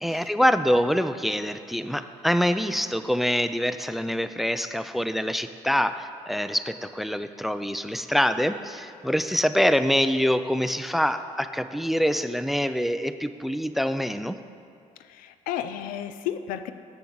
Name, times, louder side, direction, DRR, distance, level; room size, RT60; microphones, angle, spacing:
voice 1, 0.0-14.4, equal, ahead, 11 dB, 0.4 m, -25 dB
voice 2, 15.0-16.7, left 10 dB, 90° left, 11 dB, 0.5 m, -33 dB
7.2 x 6.9 x 7.8 m, 2.4 s
cardioid pair, 85°, 14 cm